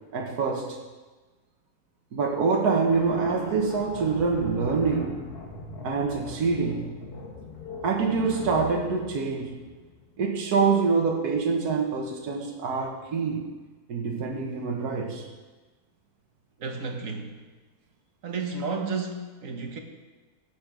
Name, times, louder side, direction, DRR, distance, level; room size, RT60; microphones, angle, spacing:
voice 1, 0.1-0.8 2.1-5.2 5.8-6.9 7.8-9.6 10.2-13.5 13.9-15.2, right 4 dB, 80° right, 1 dB, 1.7 m, -25 dB
sound 1, 2.9-10.3, left 4 dB, 85° left, 2.0 m, -41 dB
voice 2, 16.6-17.4 18.2-19.8, right 4 dB, 60° right, 4 dB, 1.5 m, -32 dB
16.5 x 6.1 x 4.8 m, 1.3 s
omnidirectional pair, 1.6 m